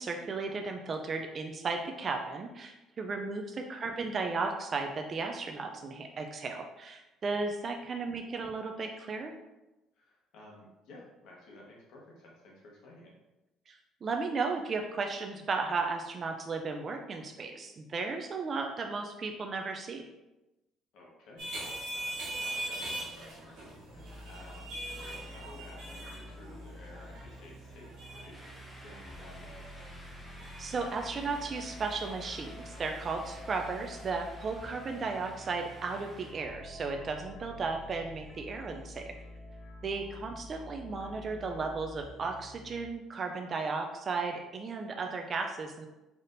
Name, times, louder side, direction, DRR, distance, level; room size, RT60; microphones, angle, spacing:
voice 1, 0.0-9.3 13.7-20.0 30.6-39.0 39.8-45.9, right 4 dB, 35° right, 3 dB, 0.3 m, -35 dB
voice 2, 9.9-13.1 20.9-29.9 34.5-34.7, left 2 dB, 70° left, -3 dB, 1.1 m, -54 dB
sound 1, 21.4-34.1, right 1 dB, 75° right, 1.3 m, -43 dB
sound 2, 23.9-42.9, left 1 dB, 30° left, 0.6 m, -48 dB
sound 3, 28.3-36.3, equal, ahead, 0.8 m, -54 dB
4.1 x 3.4 x 2.5 m, 1.0 s
cardioid pair, 145°, 0 cm